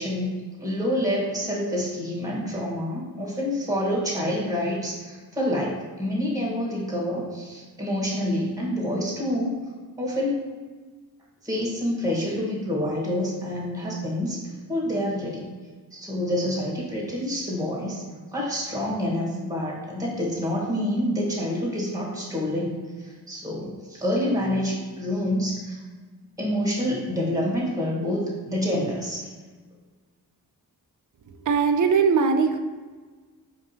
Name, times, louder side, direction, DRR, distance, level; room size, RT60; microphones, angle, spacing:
voice 1, 0.0-9.5 10.0-10.4 11.4-14.4 14.7-15.5 15.9-18.0 18.3-22.8 23.3-25.8 26.4-29.3, left 1 dB, 10° right, -4 dB, 1.1 m, -27 dB
voice 2, 31.5-32.6, right 5 dB, 50° right, 7 dB, 0.4 m, -20 dB
4.4 x 2.8 x 2.7 m, 1.4 s
cardioid pair, 50°, 38 cm